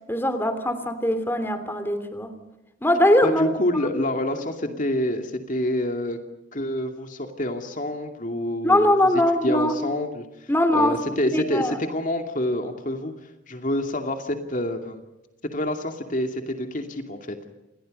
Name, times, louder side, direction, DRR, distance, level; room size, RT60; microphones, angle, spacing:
voice 1, 0.1-2.4 2.8-3.5 8.6-9.7 10.5-11.0 11.3-11.8, left 1 dB, 10° left, 10 dB, 3.1 m, -21 dB
voice 2, 3.2-6.2 6.5-9.0 9.4-13.1 13.5-15.0 15.5-17.4, left 1 dB, 45° left, 5 dB, 2.5 m, -27 dB
29.0 x 28.5 x 5.4 m, 0.97 s
head